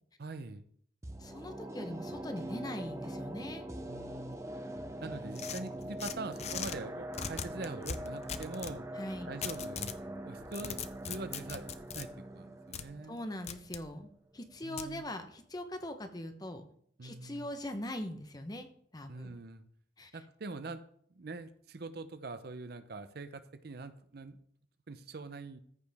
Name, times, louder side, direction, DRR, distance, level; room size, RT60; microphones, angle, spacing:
voice 1, 0.2-0.7 3.8-4.4 5.0-8.9 9.3-10.0 10.2-10.8 11.1-13.2 14.6-15.0 17.0-17.5 19.1-19.6 20.1-20.8 21.1-24.4 24.9-25.6, right 3 dB, 60° right, 11 dB, 0.6 m, -43 dB
sound 1, 1.0-14.1 14.4-14.5, right 1 dB, 15° right, 0.7 m, -43 dB
voice 2, 1.2-3.7 9.0-9.3 13.1-16.6 17.0-18.7 18.9-19.3 20.0-20.1, left 1 dB, 20° left, 7 dB, 0.9 m, -41 dB
sound 2, 5.4-6.8 7.1-8.8 9.4-10.0 10.4-12.1 12.7-12.9 13.5-13.8 14.8-14.9, left 7 dB, 35° left, 0.5 m, -40 dB
14.0 x 5.1 x 3.5 m, 0.62 s
head